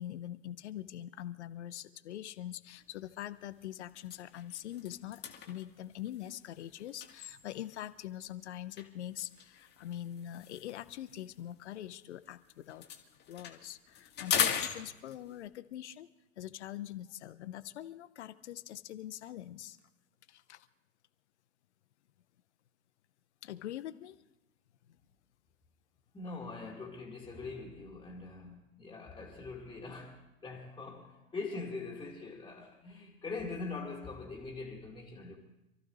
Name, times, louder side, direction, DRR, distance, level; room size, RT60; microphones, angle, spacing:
voice 1, 0.0-12.9 13.3-16.1 16.4-19.8 20.3-20.7 23.4-24.2, left 12 dB, 55° left, 1.0 m, -43 dB
sound 1, 2.8-3.0 3.5-3.6 4.0-7.9 8.8-12.3 12.6-15.5, left 8 dB, 25° left, 2.0 m, -39 dB
voice 2, 26.1-35.4, left 3 dB, 10° left, 2.3 m, -43 dB
27.5 x 14.5 x 3.1 m
figure-of-eight pair, 95°, 40 cm